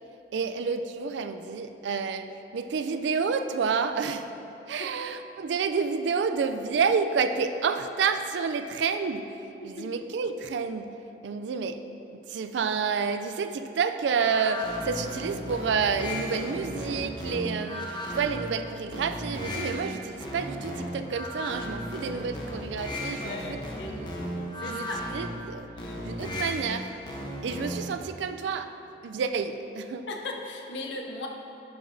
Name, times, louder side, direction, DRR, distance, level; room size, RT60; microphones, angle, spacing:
voice 1, 0.3-2.3 2.5-4.3 4.7-9.3 9.6-10.9 11.2-11.8 12.3-23.6 23.9-24.1 24.6-25.7 26.0-26.9 27.4-28.7 29.0-30.1, right 5 dB, 75° right, 9 dB, 0.4 m, -29 dB
sound 1, 14.2-28.0, equal, 25° left, 0.8 m, -35 dB
voice 2, 23.2-24.2 24.6-25.0 25.8-26.1 30.1-31.3, left 2 dB, 75° left, 1 dB, 0.7 m, -38 dB
10.5 x 5.9 x 2.7 m, 2.9 s
head